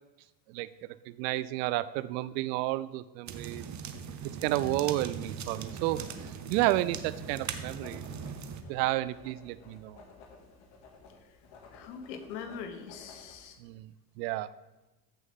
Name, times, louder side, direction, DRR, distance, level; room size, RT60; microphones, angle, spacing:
voice 1, 0.5-3.6 4.4-8.0 8.7-10.0 13.6-14.5, right 16 dB, 80° right, 17 dB, 0.6 m, -31 dB
sound 1, 3.3-8.6, right 7 dB, 35° right, 1.0 m, -40 dB
Writing, 4.2-13.6, left 4 dB, 60° left, 2.4 m, -55 dB
voice 2, 11.7-13.6, left 6 dB, 80° left, 8 dB, 1.4 m, -42 dB
14.0 x 6.2 x 3.7 m, 1.1 s
supercardioid pair, 90°, 49 cm